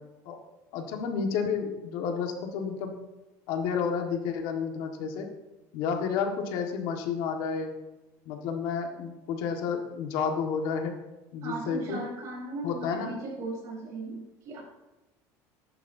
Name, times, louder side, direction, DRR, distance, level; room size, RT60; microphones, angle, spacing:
voice 1, 0.7-2.9 3.5-5.3 5.7-7.7 8.2-10.9 11.3-12.0 12.6-13.2, left 6 dB, 65° left, 4 dB, 1.6 m, -31 dB
voice 2, 11.4-14.6, right 3 dB, 45° right, -1 dB, 4.0 m, -37 dB
14.0 x 11.0 x 2.7 m, 1.1 s
cardioid pair, 165°, 8 cm